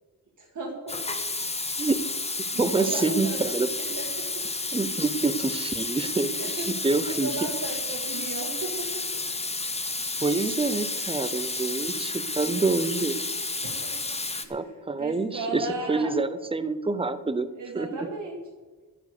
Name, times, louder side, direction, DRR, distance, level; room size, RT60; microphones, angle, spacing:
voice 1, 0.4-1.0 2.5-3.4 4.0-4.4 6.1-6.7 7.1-9.2 13.6-13.9 14.4-14.6 15.0-16.1 17.6-18.4, right 2 dB, 50° right, -1 dB, 1.7 m, -35 dB
Water tap faucet / Sink (filling or washing), 0.9-14.5, left 3 dB, 15° left, 0.8 m, -31 dB
voice 2, 2.6-3.7 4.7-7.3 10.2-13.2 14.5-17.5 17.7-18.0, right 3 dB, 15° right, 12 dB, 0.6 m, -27 dB
11.0 x 9.9 x 6.6 m, 1.3 s
wide cardioid pair, 145°, 39 cm